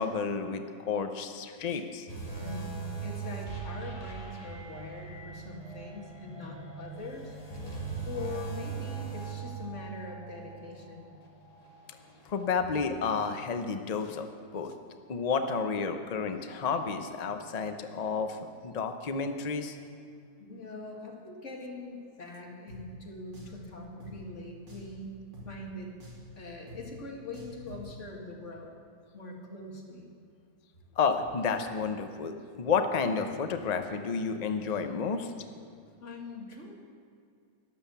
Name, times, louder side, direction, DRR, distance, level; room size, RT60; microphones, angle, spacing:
voice 1, 0.0-2.1 12.3-14.3 14.5-14.7 15.1-19.8 31.0-35.3, left 5 dB, 70° left, 7 dB, 0.3 m, -31 dB
sound 1, 2.1-13.5 13.9-14.1 14.7-14.8, right 5 dB, 20° left, 2.0 m, -41 dB
voice 2, 2.4-7.4 8.1-11.1 20.4-25.2 25.4-25.9 26.4-28.7 29.1-30.1 36.0-36.8, left 3 dB, 45° left, 0 dB, 2.3 m, -42 dB
Drum, 22.7-22.8 23.3-23.6 24.0-24.1 24.7-24.9 25.3-25.5 26.0-26.3 26.7-26.8 27.3-27.9, equal, 85° right, 3.6 m, -47 dB
13.0 x 11.0 x 6.9 m, 2.3 s
omnidirectional pair, 1.9 m